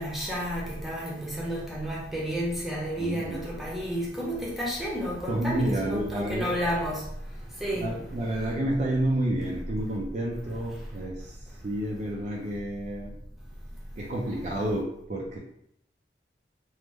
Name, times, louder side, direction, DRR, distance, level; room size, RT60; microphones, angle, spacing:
voice 1, 0.0-7.1 7.6-7.9, equal, ahead, -5 dB, 0.6 m, -31 dB
voice 2, 3.0-3.4 5.3-6.5 7.8-11.4 11.6-13.1 14.0-15.4, right 1 dB, 40° right, -2 dB, 0.4 m, -30 dB
3.0 x 2.1 x 3.4 m, 0.76 s
head